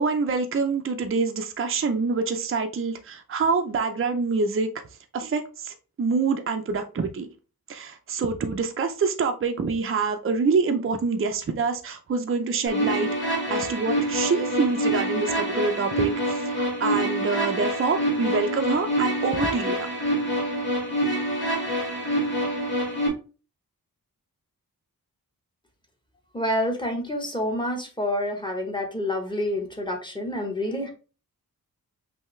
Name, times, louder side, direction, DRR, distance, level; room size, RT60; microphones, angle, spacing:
voice 1, 0.0-4.7 5.1-7.3 7.7-19.9, right 4 dB, 35° right, 6 dB, 0.5 m, -26 dB
sound 1, 12.7-23.1, equal, 30° left, 2.1 m, -26 dB
voice 2, 26.3-30.9, left 1 dB, 15° left, 1 dB, 1.1 m, -28 dB
5.6 x 2.8 x 3.1 m, 0.34 s
wide cardioid pair, 170°, 36 cm